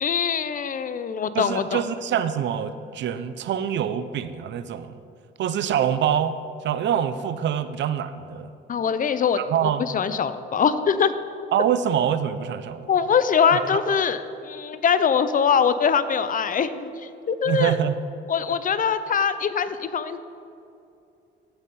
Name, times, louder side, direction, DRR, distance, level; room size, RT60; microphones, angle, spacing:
voice 1, 0.0-1.8 8.7-11.1 12.9-16.9 17.3-17.8 18.3-20.2, left 7 dB, 45° left, 12 dB, 0.5 m, -23 dB
voice 2, 1.3-4.9 5.4-6.4 6.6-8.5 9.5-9.8 11.5-12.9 13.5-13.6 17.5-17.9, right 9 dB, 65° right, 12 dB, 0.5 m, -25 dB
15.0 x 5.4 x 4.1 m, 2.7 s
cardioid pair, 90°, 20 cm